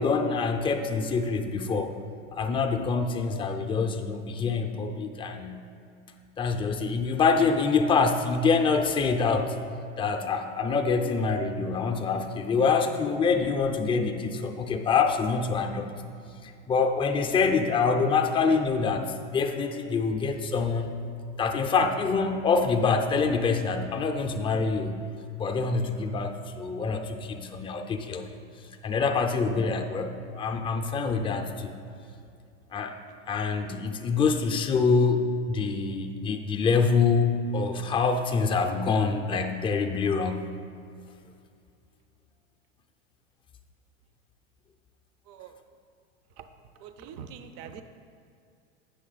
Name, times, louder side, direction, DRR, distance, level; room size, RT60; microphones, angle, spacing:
voice 1, 0.0-2.0 2.3-5.6 6.4-9.5 10.0-15.9 16.4-21.0 21.4-25.0 25.4-28.3 28.8-31.8 32.7-33.0 33.3-40.4, left 4 dB, 15° left, 5 dB, 0.5 m, -25 dB
voice 2, 46.8-47.8, right 7 dB, 45° right, 9 dB, 0.5 m, -43 dB
8.5 x 5.9 x 4.0 m, 2.5 s
hypercardioid pair, 115°, 34 cm